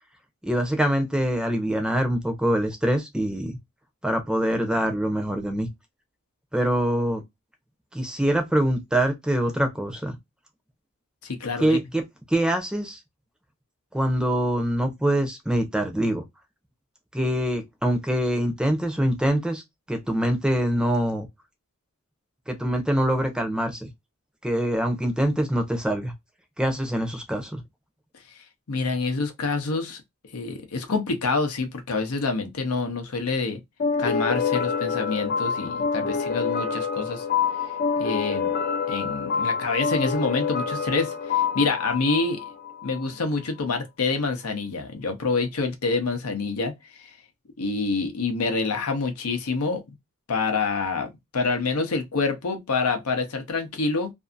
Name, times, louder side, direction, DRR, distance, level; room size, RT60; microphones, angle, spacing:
voice 1, 0.4-3.6 4.0-5.7 6.5-7.2 7.9-10.2 11.6-12.0 12.3-13.0 13.9-16.2 17.1-19.6 19.9-21.3 22.5-23.9 24.4-26.1 26.6-27.6, right 1 dB, 5° right, 0.6 m, -24 dB
voice 2, 11.2-11.8 28.7-30.0 30.3-33.6 34.0-37.2 38.0-38.5 38.9-42.4 42.8-46.7 47.0-47.1 47.6-49.8 50.3-54.1, left 4 dB, 80° left, 0.7 m, -27 dB
sound 1, 33.8-43.1, left 6 dB, 45° left, 0.4 m, -27 dB
2.6 x 2.5 x 2.4 m
head